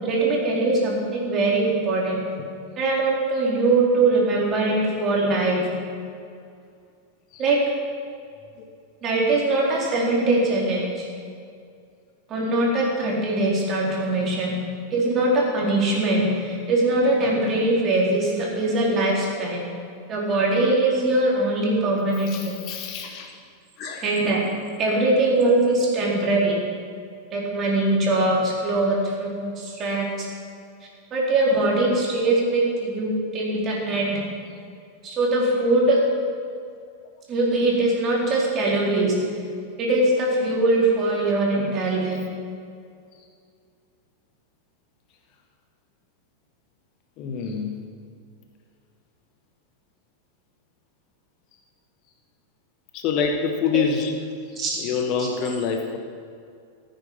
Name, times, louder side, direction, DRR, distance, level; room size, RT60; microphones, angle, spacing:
voice 1, 0.0-2.2 2.8-5.7 7.4-7.6 9.0-11.1 12.3-14.5 14.9-19.6 20.1-22.6 24.0-24.4 24.8-26.6 27.3-30.3 31.1-34.2 35.0-36.0 37.3-39.2 39.8-42.2 53.7-53.8 54.6-54.8 55.2-55.3, right 2 dB, 30° right, -3 dB, 4.1 m, -22 dB
voice 2, 2.1-2.5 7.3-7.4 8.6-8.7 22.3-23.3 23.8-24.1 47.2-47.8 52.9-54.2 54.5-56.0, left 6 dB, 40° left, 4 dB, 1.2 m, -27 dB
15.5 x 9.5 x 5.6 m, 2.3 s
figure-of-eight pair, 90°, 0 cm